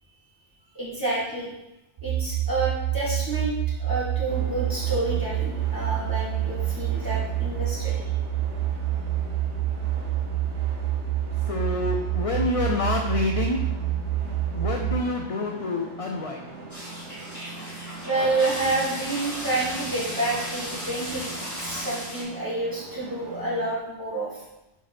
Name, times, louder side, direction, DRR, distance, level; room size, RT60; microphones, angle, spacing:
voice 1, 0.7-1.5 2.0-8.0 18.0-24.4, right 2 dB, 15° right, -9 dB, 2.6 m, -29 dB
sound 1, 2.0-15.0, right 11 dB, 60° right, 0.9 m, -27 dB
sound 2, 4.2-23.7, right 3 dB, 90° right, 1.3 m, -42 dB
voice 2, 11.4-13.7 14.5-16.5, left 3 dB, 40° left, 1 dB, 0.5 m, -27 dB
sound 3, 16.7-22.2, equal, 15° left, 2.2 m, -35 dB
4.6 x 4.6 x 5.9 m, 0.92 s
omnidirectional pair, 1.2 m